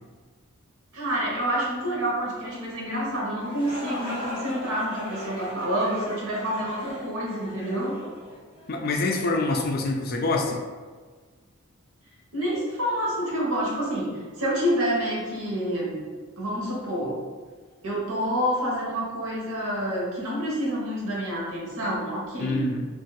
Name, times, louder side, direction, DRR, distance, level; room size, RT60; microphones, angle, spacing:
voice 1, 0.9-7.9 12.3-16.0 16.4-17.2 17.8-22.7, equal, 80° right, -4 dB, 1.0 m, -28 dB
sound 1, 3.3-9.0, left 1 dB, 20° left, 1.3 m, -38 dB
voice 2, 8.7-10.6 22.4-22.9, left 2 dB, 45° left, 2 dB, 0.4 m, -25 dB
2.6 x 2.4 x 3.9 m, 1.5 s
head